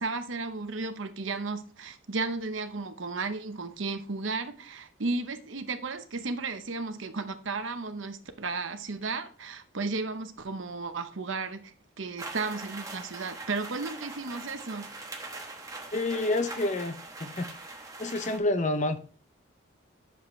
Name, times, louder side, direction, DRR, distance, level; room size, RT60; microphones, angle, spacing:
voice 1, 0.0-14.9, right 3 dB, 75° right, 0.9 m, -34 dB
sound 1, 12.2-18.4, right 3 dB, 15° right, 1.0 m, -42 dB
voice 2, 15.9-17.5 18.0-19.0, left 2 dB, 35° left, 0.6 m, -28 dB
8.5 x 6.9 x 3.2 m
head